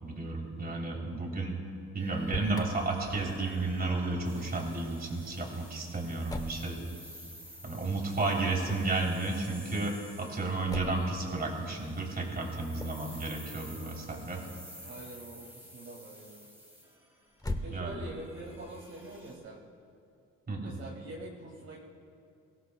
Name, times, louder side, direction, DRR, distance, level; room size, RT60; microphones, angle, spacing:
voice 1, 0.0-1.5 1.9-6.8 7.6-14.4 17.7-18.0 20.5-20.8, right 3 dB, 30° right, 0 dB, 3.3 m, -32 dB
Motor vehicle (road), 2.0-2.7 6.3-6.7 8.6-9.0 10.7-11.1 12.7-13.1 17.3-18.2, left 2 dB, 10° left, 0.9 m, -38 dB
sound 1, 2.0-19.4, equal, 10° right, 4.1 m, -52 dB
voice 2, 14.8-16.5 17.6-19.6 20.6-21.8, right 1 dB, 55° right, -3 dB, 2.2 m, -45 dB
22.5 x 17.0 x 2.3 m, 2.5 s
cardioid pair, 90°, 30 cm